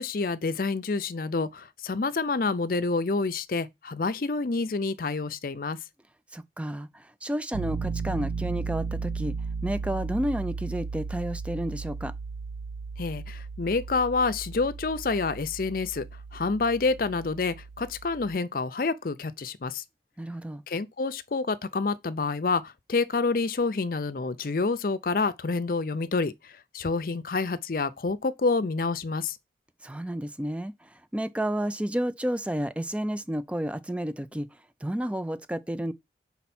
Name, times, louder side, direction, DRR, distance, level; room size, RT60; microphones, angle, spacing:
voice 1, 0.0-5.8 13.0-16.0 16.3-19.8 20.7-26.3 26.7-29.4, left 3 dB, 50° left, 0.5 m, -28 dB
voice 2, 6.3-9.3 9.6-12.1 20.2-20.6 29.8-34.5 34.8-35.9, right 1 dB, 5° right, 0.3 m, -31 dB
Piano, 7.5-18.4, right 4 dB, 90° right, 0.4 m, -35 dB
5.6 x 4.1 x 4.2 m
head